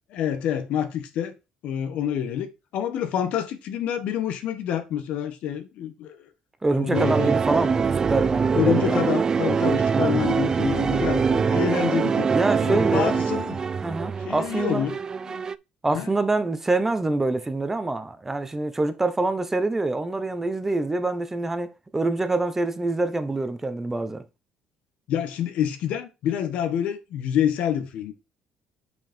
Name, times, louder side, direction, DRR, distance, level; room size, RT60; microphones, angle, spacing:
voice 1, 0.1-1.3 1.6-6.3 6.7-7.3 8.5-12.3 12.6-13.6 14.2-15.0 15.3-15.4 15.9-16.1 25.1-28.1, left 9 dB, 70° left, 1.3 m, -27 dB
voice 2, 6.6-9.0 9.9-10.2 12.3-13.3 13.8-14.9 15.8-24.2, right 2 dB, 15° right, 0.9 m, -25 dB
sound 1, 6.9-15.5, right 6 dB, 30° right, 0.3 m, -24 dB
5.7 x 5.5 x 4.4 m
cardioid pair, 105°, 2 cm